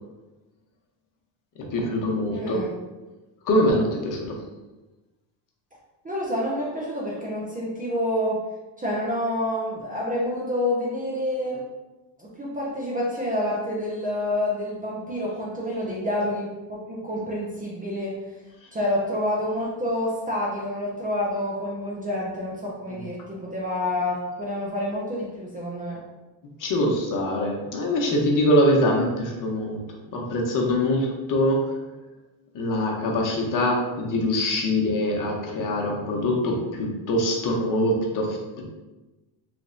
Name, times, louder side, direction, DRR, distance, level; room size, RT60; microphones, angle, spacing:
voice 1, 1.6-2.6 3.4-4.4 22.9-23.0 26.6-29.8 30.1-31.8 32.5-38.7, left 1 dB, 40° left, 0 dB, 0.9 m, -24 dB
voice 2, 2.3-2.7 6.0-8.4 8.8-11.6 12.2-18.2 18.7-26.0, left 1 dB, 20° right, -5 dB, 0.5 m, -28 dB
3.3 x 3.0 x 2.6 m, 1.1 s
cardioid pair, 115°, 48 cm